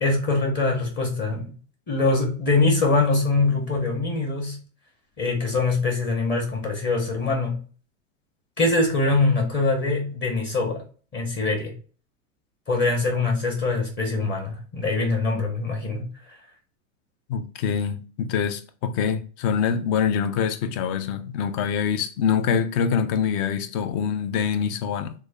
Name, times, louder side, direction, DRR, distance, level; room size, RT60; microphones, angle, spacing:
voice 1, 0.0-1.5 1.9-4.6 5.2-7.6 8.6-10.8 11.1-11.7 12.7-16.1, left 3 dB, 25° left, 1.0 m, -23 dB
voice 2, 17.3-25.1, left 7 dB, 50° left, 0.6 m, -25 dB
3.6 x 2.1 x 3.4 m
supercardioid pair, 130°, 41 cm